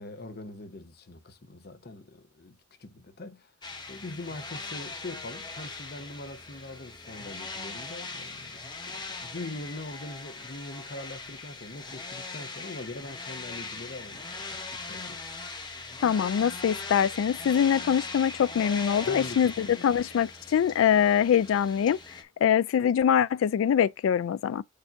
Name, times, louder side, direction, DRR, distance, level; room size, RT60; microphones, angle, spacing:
voice 1, 0.0-3.5 3.9-15.2 19.0-20.0, left 2 dB, 50° left, 0.8 m, -42 dB
sound 1, 3.6-22.2, left 3 dB, 20° left, 0.8 m, -40 dB
voice 2, 16.0-22.0 22.4-24.6, left 8 dB, 80° left, 0.3 m, -24 dB
6.7 x 2.6 x 5.6 m
head